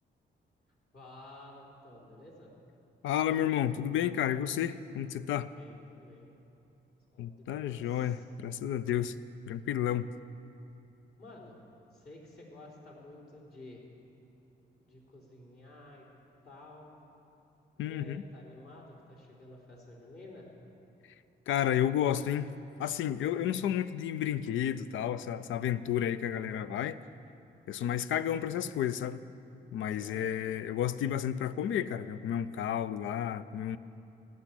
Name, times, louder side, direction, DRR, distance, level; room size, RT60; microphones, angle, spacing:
voice 1, 0.9-2.5 5.5-6.3 7.1-8.2 11.2-11.6 11.9-13.9 14.8-16.1 16.4-16.9 17.8-20.5 30.0-30.3, left 2 dB, 55° left, -4 dB, 3.5 m, -52 dB
voice 2, 3.0-5.5 7.2-9.2 9.5-10.1 17.8-18.2 21.5-22.5 22.8-27.0 27.7-29.2 29.7-33.8, left 10 dB, 90° left, 14 dB, 0.5 m, -31 dB
15.0 x 6.3 x 9.8 m, 2.7 s
cardioid pair, 90°, 20 cm